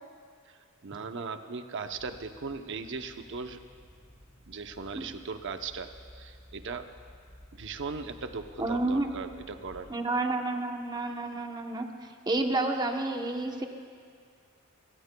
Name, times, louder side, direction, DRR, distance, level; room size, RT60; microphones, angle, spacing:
voice 1, 0.8-3.6 4.5-5.9 6.1-6.9 7.5-9.9, right 4 dB, 60° right, 7 dB, 0.7 m, -38 dB
sound 1, 1.9-9.9, equal, 10° left, 3.9 m, -54 dB
voice 2, 8.6-9.1 9.9-13.7, right 2 dB, 20° right, 3 dB, 0.9 m, -30 dB
29.5 x 16.0 x 2.3 m, 2.1 s
head